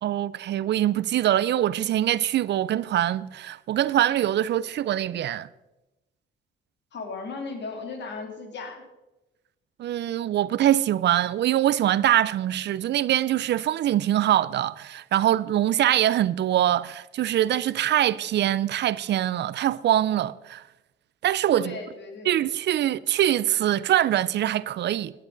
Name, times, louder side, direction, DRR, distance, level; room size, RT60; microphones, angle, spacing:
voice 1, 0.0-5.5 9.8-20.6 21.2-21.7 22.3-25.1, right 12 dB, 60° right, 0.5 m, -23 dB
voice 2, 6.9-8.8 21.5-22.4, left 4 dB, 60° left, 2.7 m, -36 dB
16.5 x 10.5 x 3.9 m
cardioid pair, 90°, 20 cm